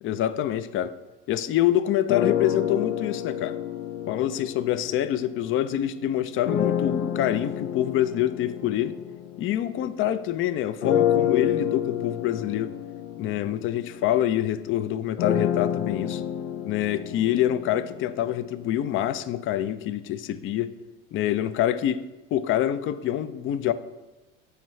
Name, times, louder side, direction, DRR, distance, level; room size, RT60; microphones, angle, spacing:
voice 1, 0.0-1.0 1.3-3.6 4.1-9.0 9.4-12.7 13.2-16.2 16.7-20.7 21.1-23.7, left 11 dB, 30° left, 0.4 m, -26 dB
sound 1, 2.1-5.6 6.4-10.2 10.8-18.8, left 9 dB, 90° left, 0.7 m, -29 dB
13.5 x 4.5 x 3.1 m
hypercardioid pair, 90°, 41 cm